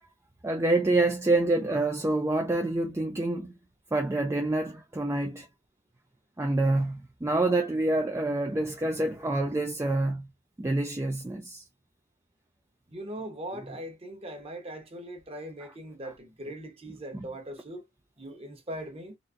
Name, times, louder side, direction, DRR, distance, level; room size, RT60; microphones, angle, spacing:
voice 1, 0.4-3.5 3.9-5.5 6.4-10.3 10.6-11.6, right 2 dB, 15° right, 0.4 m, -27 dB
voice 2, 12.9-17.8 18.2-19.2, right 1 dB, 30° right, 1.1 m, -40 dB
4.0 x 2.6 x 2.6 m
head